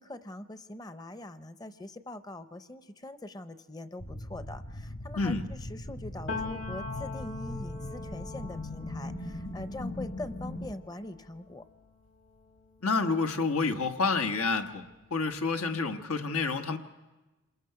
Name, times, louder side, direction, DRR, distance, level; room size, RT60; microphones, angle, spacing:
voice 1, 0.0-11.7, left 1 dB, 20° left, 12 dB, 0.6 m, -43 dB
sound 1, 4.0-10.8, left 1 dB, 40° left, 1.0 m, -39 dB
voice 2, 5.1-5.5 12.8-14.8 15.1-16.8, left 4 dB, 90° left, 6 dB, 1.2 m, -28 dB
Piano, 6.3-13.9 14.2-15.8, left 3 dB, 65° left, 2.4 m, -44 dB
27.0 x 21.5 x 5.8 m, 1.2 s
head